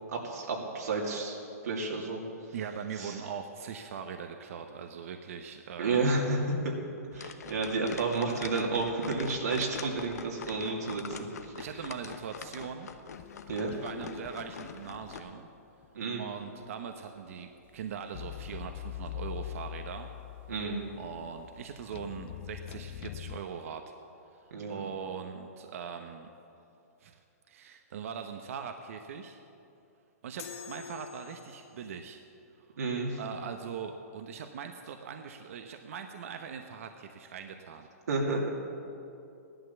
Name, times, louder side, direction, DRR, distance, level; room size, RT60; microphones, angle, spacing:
voice 1, 0.1-1.4 1.6-2.2 3.0-3.1 5.8-6.7 7.1-11.5 13.5-13.7 15.9-16.3 20.5-20.8 24.5-24.8 32.8-33.2 38.1-38.5, right 3 dB, 85° right, -2 dB, 2.6 m, -31 dB
voice 2, 2.5-6.0 11.6-12.9 13.8-15.5 16.2-20.1 21.0-23.9 24.3-24.4 24.7-26.3 27.0-27.2 27.5-29.4 30.2-32.2 33.2-37.9, right 7 dB, 60° right, 6 dB, 1.0 m, -41 dB
sound 1, 7.1-15.2, left 6 dB, 80° left, 1.0 m, -44 dB
sound 2, 13.1-15.6 15.8-15.9 18.1-23.4, left 13 dB, 40° left, 0.5 m, -43 dB
sound 3, 30.4-31.9, left 7 dB, 65° left, 2.0 m, -45 dB
15.5 x 11.5 x 6.9 m, 2.7 s
hypercardioid pair, 155°, 9 cm